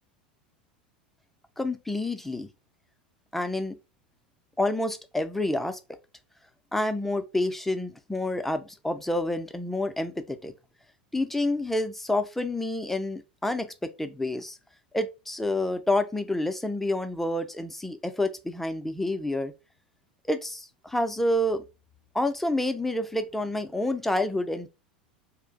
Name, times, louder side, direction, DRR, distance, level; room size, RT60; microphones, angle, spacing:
voice 1, 1.6-2.5 3.3-3.8 4.6-5.8 6.7-10.5 11.1-14.6 14.9-19.5 20.3-21.6 22.1-24.7, left 1 dB, 5° left, 0.4 m, -28 dB
2.4 x 2.1 x 3.7 m
figure-of-eight pair, 80°, 5 cm